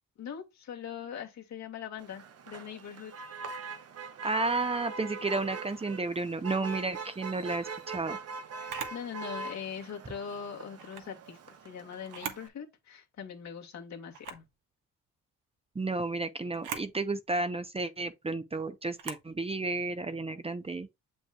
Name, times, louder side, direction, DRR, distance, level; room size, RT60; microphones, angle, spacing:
voice 1, 0.2-3.3 8.6-14.4, left 7 dB, 65° left, 2.1 m, -42 dB
Motor vehicle (road), 2.0-12.5, right 5 dB, 55° right, 1.2 m, -42 dB
voice 2, 4.2-8.2 15.7-20.9, right 3 dB, 20° right, 0.8 m, -32 dB
Camera, 8.7-9.0 10.7-11.1 12.0-12.5 12.9-13.0 14.1-14.5 16.5-16.9 18.9-19.3, right 7 dB, 80° right, 1.7 m, -40 dB
7.3 x 5.4 x 2.4 m
cardioid pair, 90°, 30 cm